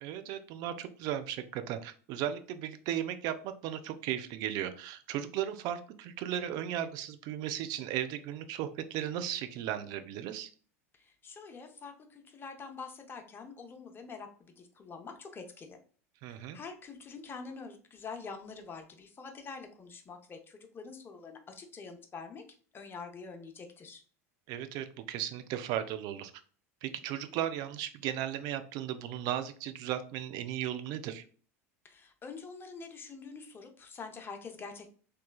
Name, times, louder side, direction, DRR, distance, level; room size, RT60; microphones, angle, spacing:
voice 1, 0.0-10.5 16.2-16.6 24.5-26.3 26.8-31.2, right 11 dB, 55° right, 10 dB, 0.4 m, -36 dB
voice 2, 10.9-15.8 16.3-22.4 22.7-24.0 31.8-34.9, left 4 dB, 25° left, 4 dB, 0.6 m, -46 dB
3.0 x 2.2 x 2.3 m, 0.42 s
hypercardioid pair, 85°, 8 cm